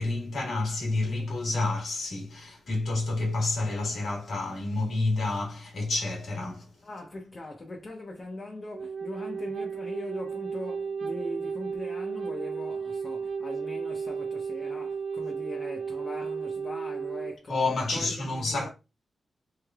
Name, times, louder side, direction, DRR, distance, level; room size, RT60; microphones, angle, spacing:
voice 1, 0.0-6.7 17.5-18.7, left 2 dB, 80° left, 1.5 m, -29 dB
voice 2, 6.8-17.6 17.9-18.7, left 2 dB, 30° left, 0.6 m, -40 dB
Wind instrument woodwind instrument, 8.7-17.4, right 5 dB, 75° right, 0.6 m, -34 dB
3.7 x 3.3 x 2.3 m
wide cardioid pair, 155°, 0 cm